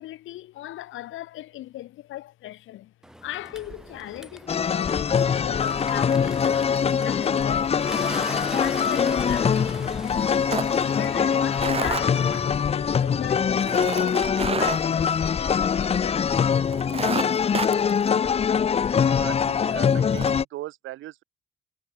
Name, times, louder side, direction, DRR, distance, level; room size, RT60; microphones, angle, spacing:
voice 1, 0.0-2.9 3.2-6.8 7.0-7.8 8.6-10.1 10.9-16.8, left 15 dB, 85° left, 1.8 m, -38 dB
Bird, 3.0-12.4, equal, 5° right, 1.3 m, -40 dB
sound 1, 3.5-4.2 4.5-4.8 5.2-15.9 16.2-16.3 16.6-19.2 19.6-19.7 20.0-20.3, right 5 dB, 30° right, 0.8 m, -34 dB
sound 2, 4.5-20.4, left 7 dB, 30° left, 0.5 m, -23 dB
voice 2, 19.1-21.2, right 15 dB, 85° right, 1.2 m, -38 dB
cardioid pair, 90°, 20 cm